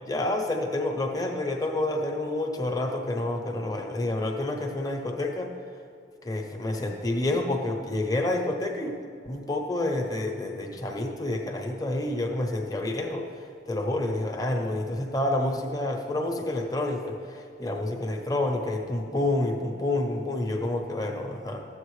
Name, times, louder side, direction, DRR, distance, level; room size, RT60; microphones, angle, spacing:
voice 1, 0.1-5.5 6.2-9.0 9.2-13.3 13.7-21.7, left 2 dB, 20° left, 2 dB, 0.8 m, -28 dB
13.0 x 8.0 x 3.2 m, 2.4 s
head